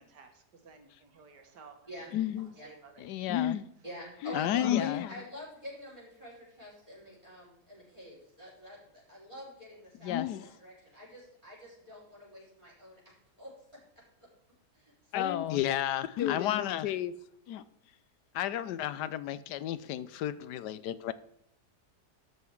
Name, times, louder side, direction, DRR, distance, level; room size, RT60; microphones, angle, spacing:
voice 1, 0.0-1.7 2.4-3.4, right 5 dB, 85° right, 2.0 m, -55 dB
voice 2, 2.1-2.5 3.0-3.7 4.2-5.1 10.0-10.5 15.1-17.1 17.5-17.6 18.3-21.1, left 11 dB, 85° left, 1.2 m, -31 dB
voice 3, 3.8-13.0 13.4-13.5 14.7-14.9 15.2-15.3 16.4-16.5, equal, 20° right, 5.0 m, -47 dB
13.0 x 5.7 x 4.6 m
omnidirectional pair, 1.8 m